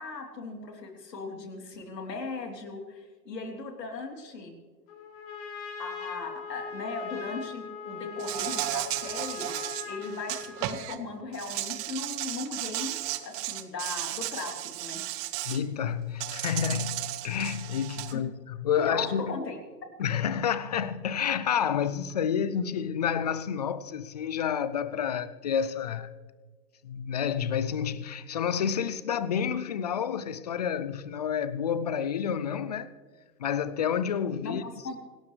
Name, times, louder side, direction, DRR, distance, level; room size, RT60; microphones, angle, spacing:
voice 1, 0.0-4.5 5.8-9.5 9.8-13.0 13.2-15.0 18.1-18.2 18.8-19.6 34.4-35.0, left 3 dB, 80° left, 3.4 m, -38 dB
Trumpet, 4.9-10.9, left 6 dB, 50° left, 4.9 m, -40 dB
Insect, 8.2-11.0 11.3-15.6 16.2-18.1, right 15 dB, 30° right, 0.9 m, -34 dB
voice 2, 15.5-19.3 20.0-26.1 26.8-32.9 33.4-34.6, left 8 dB, 30° left, 0.3 m, -29 dB
27.0 x 12.5 x 3.3 m
hypercardioid pair, 115°, 49 cm